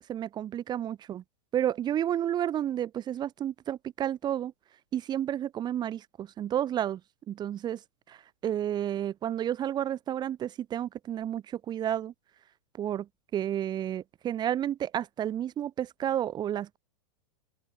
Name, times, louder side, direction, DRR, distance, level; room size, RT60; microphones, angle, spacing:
voice 1, 0.1-1.2 1.5-4.5 4.9-7.0 7.3-7.8 8.1-12.1 12.8-16.8, right 10 dB, 20° right, 7.8 m, -31 dB
open air
supercardioid pair, 155°, 20 cm